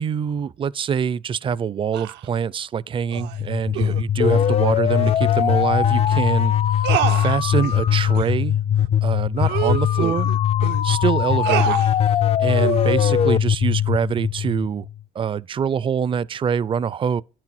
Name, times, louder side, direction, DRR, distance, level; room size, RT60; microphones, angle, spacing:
voice 1, 0.0-8.6 9.0-10.3 10.8-14.9 15.1-17.2, right 7 dB, 30° right, 0.4 m, -25 dB
sound 1, 1.9-2.3 3.1-3.4 3.7-4.0 5.0-5.2 5.6-5.7 6.0-6.2 6.8-7.8 8.1-8.3 8.8-8.9 9.4-10.8 11.4-11.9 12.6-12.9, right 15 dB, 85° right, 0.5 m, -27 dB
sound 2, 3.2-15.0, left 10 dB, 35° left, 0.4 m, -20 dB
10.5 x 6.1 x 4.3 m
cardioid pair, 110°, 17 cm